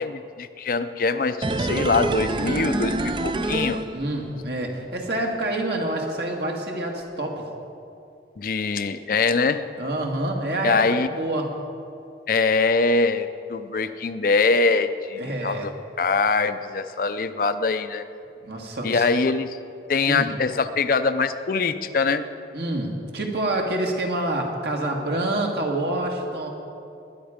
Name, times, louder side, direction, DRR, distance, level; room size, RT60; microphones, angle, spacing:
voice 1, 0.0-3.8 8.4-9.6 10.6-11.1 12.3-15.7 16.0-18.0 18.8-19.6 19.9-22.2, left 4 dB, 50° left, 10 dB, 0.5 m, -23 dB
sound 1, 1.4-4.5 4.8-4.9, right 2 dB, 25° right, 0.4 m, -26 dB
voice 2, 3.9-7.4 9.8-11.5 15.2-15.7 18.4-19.0 20.1-20.4 22.5-26.5, right 1 dB, 65° right, 1 dB, 1.9 m, -27 dB
21.0 x 8.9 x 5.1 m, 2.6 s
head